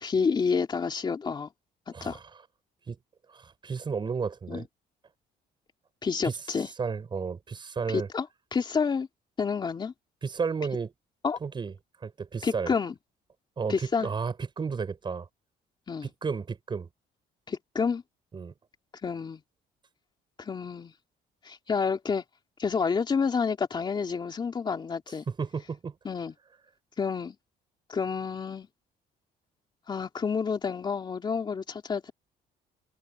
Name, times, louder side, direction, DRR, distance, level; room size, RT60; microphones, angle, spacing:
voice 1, 0.0-1.5 1.9-2.2 4.5-4.6 6.0-6.7 7.9-9.1 9.4-9.9 11.2-11.4 12.4-13.0 13.7-14.1 15.9-16.1 17.5-18.0 19.0-19.4 20.4-20.9 21.4-22.2 22.6-25.2 26.0-26.3 27.0-27.4 27.9-28.7 29.9-32.1, left 5 dB, 30° left, 2.6 m, -29 dB
voice 2, 3.3-4.6 6.2-6.3 6.8-8.1 10.2-10.9 11.4-11.7 12.0-12.7 13.6-15.3 16.0-16.9 18.3-18.5 25.3-25.9, right 5 dB, 30° right, 6.7 m, -32 dB
cardioid pair, 130°, 16 cm